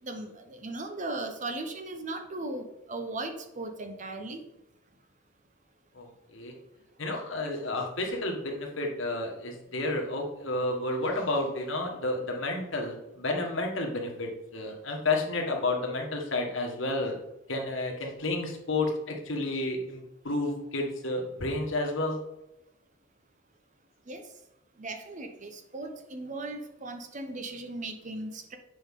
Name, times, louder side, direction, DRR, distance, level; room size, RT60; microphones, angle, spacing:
voice 1, 0.0-4.5 24.1-24.2 24.8-28.6, right 2 dB, 35° right, 6 dB, 0.8 m, -37 dB
voice 2, 5.9-6.5 7.0-17.2 17.5-22.2, left 2 dB, 65° left, 1 dB, 1.5 m, -31 dB
7.9 x 5.3 x 3.7 m, 0.90 s
head